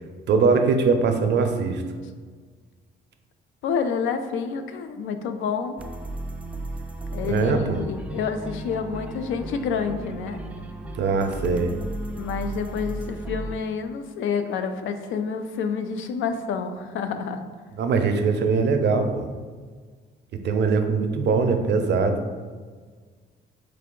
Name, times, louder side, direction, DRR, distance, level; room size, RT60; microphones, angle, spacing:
voice 1, 0.3-1.8 7.2-7.8 11.0-11.7 17.8-19.3 20.4-22.2, right 4 dB, 60° right, 6 dB, 0.5 m, -21 dB
voice 2, 3.6-5.8 7.1-10.4 12.2-17.4, left 6 dB, 80° left, 8 dB, 0.4 m, -28 dB
sound 1, 5.8-13.6, right 1 dB, 5° right, 0.3 m, -35 dB
3.7 x 3.3 x 3.7 m, 1.5 s
cardioid pair, 90°, 20 cm